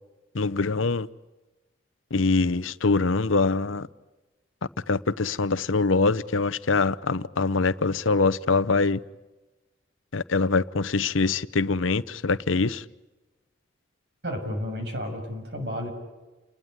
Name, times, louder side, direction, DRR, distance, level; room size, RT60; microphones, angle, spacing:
voice 1, 0.3-1.1 2.1-3.9 4.9-9.0 10.1-12.8, left 3 dB, 85° left, 0.9 m, -24 dB
voice 2, 14.2-15.9, equal, 55° right, 6.8 m, -32 dB
29.5 x 20.0 x 9.7 m
head